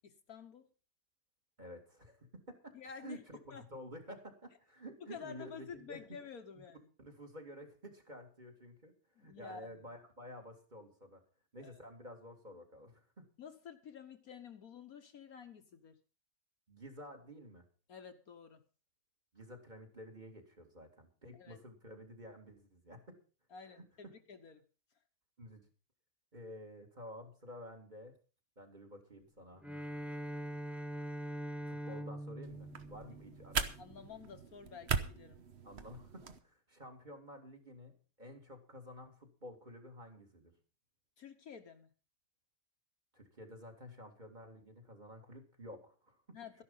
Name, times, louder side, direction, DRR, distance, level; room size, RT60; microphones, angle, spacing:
voice 1, 0.0-0.7 2.7-3.2 3.5-3.6 5.0-6.8 9.2-9.8 11.6-11.7 13.4-15.9 17.9-18.6 21.4-21.6 23.5-24.6 33.8-35.4 41.2-41.9 46.3-46.6, left 6 dB, 60° left, 7 dB, 1.5 m, -50 dB
voice 2, 1.6-2.7 3.0-6.0 7.0-8.9 9.2-11.2 11.5-13.3 16.7-17.6 19.3-23.0 23.8-24.1 25.4-25.6 26.3-28.1 28.6-29.7 31.7-33.7 35.6-40.5 43.1-46.6, equal, 25° right, 5 dB, 2.5 m, -51 dB
Bowed string instrument, 29.6-33.9, equal, ahead, 0.5 m, -43 dB
sound 1, 32.4-36.4, right 6 dB, 45° right, 1.1 m, -40 dB
13.0 x 11.0 x 5.5 m, 0.36 s
omnidirectional pair, 1.8 m